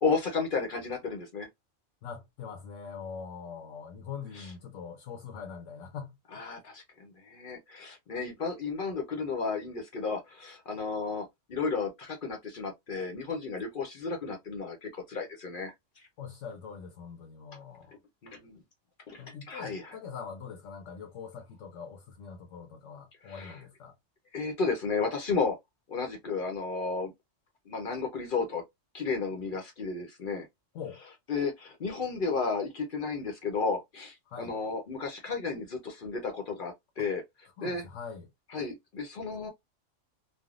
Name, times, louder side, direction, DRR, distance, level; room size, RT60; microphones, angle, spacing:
voice 1, 0.0-1.5 4.3-4.5 6.3-15.7 18.2-18.6 19.1-19.9 23.2-23.6 24.3-25.6 25.9-27.1 27.7-28.6 28.9-30.5 31.3-37.2 37.6-37.8 38.5-39.5, left 4 dB, 50° left, 0.7 m, -33 dB
voice 2, 2.0-6.2 16.2-18.0 19.2-24.0 30.7-31.0 34.3-34.6 37.0-37.1 37.6-38.3, left 6 dB, 75° left, 0.9 m, -43 dB
3.4 x 2.1 x 2.3 m
omnidirectional pair, 1.3 m